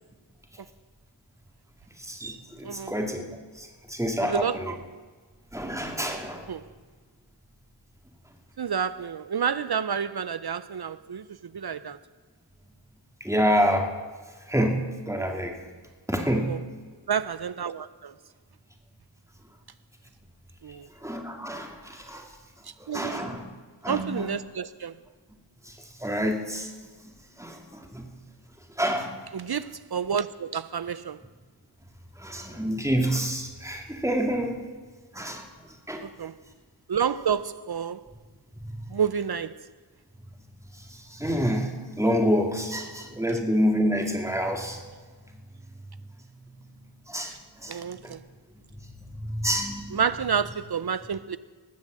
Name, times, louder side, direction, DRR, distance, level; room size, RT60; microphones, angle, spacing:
voice 1, 2.0-3.3 3.6-4.7 5.5-6.4 13.2-13.9 14.5-14.8 15.1-15.5 16.1-16.5 21.0-22.2 22.8-23.4 23.8-24.3 26.0-26.7 27.4-28.1 28.8-29.1 32.2-34.5 35.1-35.4 35.9-36.0 41.1-41.7 42.0-44.8 47.1-47.3 47.6-48.1 49.2-50.0, equal, 5° right, 2.2 m, -27 dB
voice 2, 2.6-2.9 4.2-4.8 6.5-6.6 8.6-11.2 11.5-12.0 16.4-16.6 17.1-18.1 20.6-20.9 22.7-23.3 23.9-25.0 29.3-31.2 36.0-36.3 36.9-38.0 38.9-39.6 47.7-48.2 49.9-51.4, right 7 dB, 55° right, 0.5 m, -29 dB
19.5 x 7.3 x 7.5 m
wide cardioid pair, 45°, 45 cm